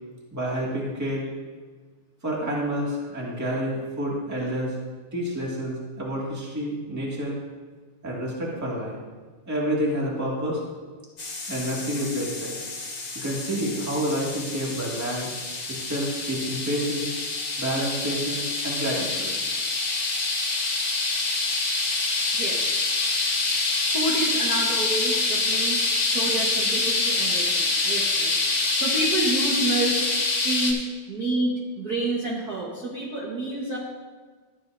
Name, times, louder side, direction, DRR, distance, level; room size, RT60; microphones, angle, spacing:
voice 1, 0.3-1.2 2.2-4.8 5.1-7.4 8.0-9.0 9.4-10.6 11.5-12.5 13.1-15.3 15.7-17.1 17.6-19.3, equal, 10° right, -4 dB, 1.4 m, -29 dB
sound 1, 11.2-30.7, left 3 dB, 40° left, 1.9 m, -26 dB
voice 2, 22.3-22.7 23.9-30.0 30.4-33.8, right 2 dB, 50° right, -3 dB, 1.2 m, -29 dB
13.0 x 9.9 x 2.6 m, 1.4 s
omnidirectional pair, 3.3 m